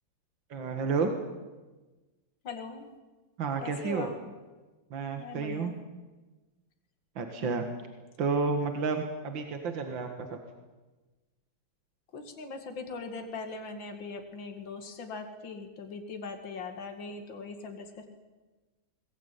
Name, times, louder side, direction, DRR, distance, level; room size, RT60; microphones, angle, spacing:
voice 1, 0.5-1.1 3.4-4.1 4.9-5.7 7.2-7.6 8.2-10.4, right 4 dB, 65° right, 5 dB, 2.5 m, -31 dB
voice 2, 2.4-2.9 3.6-4.2 5.2-5.8 7.3-7.8 12.1-18.1, left 4 dB, 65° left, 5 dB, 2.9 m, -41 dB
22.0 x 20.5 x 9.2 m, 1.2 s
omnidirectional pair, 2.2 m